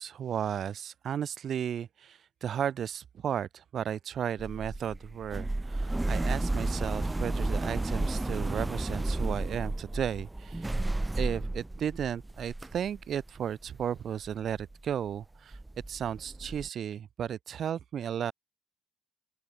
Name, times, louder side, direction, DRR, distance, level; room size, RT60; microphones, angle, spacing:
voice 1, 0.0-10.7 11.1-15.6 15.9-18.3, right 9 dB, 60° right, 3.8 m, -34 dB
sound 1, 4.4-14.0 14.2-14.8 15.2-15.3 15.5-16.7, right 2 dB, 15° right, 6.6 m, -32 dB
open air
cardioid pair, 90°, 0 cm